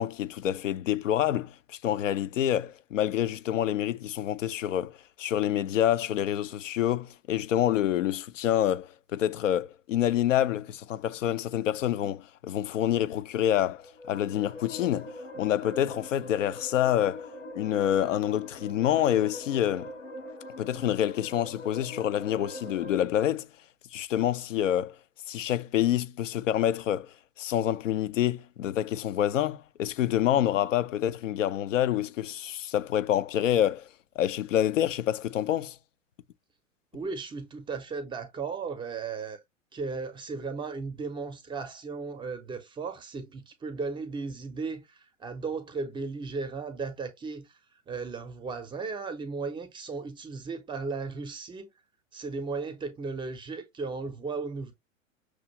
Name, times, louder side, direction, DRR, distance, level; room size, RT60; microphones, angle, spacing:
voice 1, 0.0-1.5 1.8-15.1 15.4-17.3 17.5-19.9 20.6-23.5 23.9-25.0 25.3-33.9 34.2-35.8, left 11 dB, 70° left, 0.5 m, -27 dB
sound 1, 13.8-23.0, left 1 dB, 85° left, 1.7 m, -43 dB
voice 2, 36.9-39.4 39.7-47.5 47.9-51.7 52.1-54.7, right 4 dB, 10° right, 0.6 m, -35 dB
6.0 x 2.4 x 2.9 m
figure-of-eight pair, 100°, 40 cm